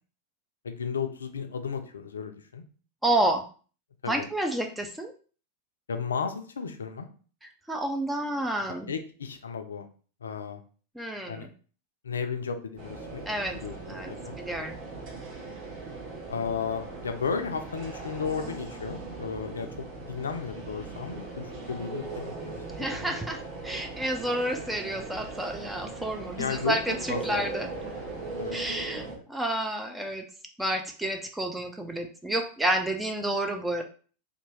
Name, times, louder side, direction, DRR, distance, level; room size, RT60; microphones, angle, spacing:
voice 1, 0.6-2.6 4.0-4.3 5.9-7.1 8.9-9.9 10.2-10.6 11.3-11.5 12.0-13.2 13.6-14.4 16.3-22.6 22.9-23.2 26.4-26.8 27.1-27.5 28.4-28.6 29.1-29.2, left 6 dB, 75° left, 6 dB, 0.4 m, -34 dB
voice 2, 3.0-3.4 4.1-5.1 7.4-8.9 11.0-11.5 13.3-13.6 13.9-14.1 14.4-14.8 22.7-27.7 28.5-30.3 30.6-33.8, right 1 dB, 5° right, 4 dB, 0.4 m, -30 dB
sound 1, 12.8-29.2, right 3 dB, 45° right, 0.9 m, -39 dB
2.7 x 2.2 x 3.0 m, 0.40 s
figure-of-eight pair, 90°, 0 cm